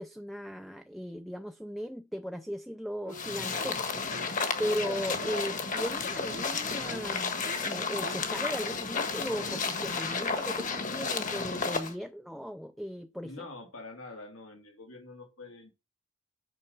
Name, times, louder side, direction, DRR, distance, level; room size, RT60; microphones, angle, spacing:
voice 1, 0.0-4.1 4.6-13.5, equal, ahead, 0.4 m, -37 dB
sound 1, 3.0-3.3 3.6-3.8 4.1-4.3 4.6-4.8 5.2-5.4 5.7-5.9 6.3-6.5 6.9-7.0 7.4-7.6 8.0-8.2, right 2 dB, 45° right, 0.7 m, -45 dB
sound 2, 3.1-11.9, left 4 dB, 40° left, 1.4 m, -32 dB
voice 2, 13.2-15.7, left 2 dB, 80° left, 2.8 m, -46 dB
8.2 x 5.6 x 6.6 m
head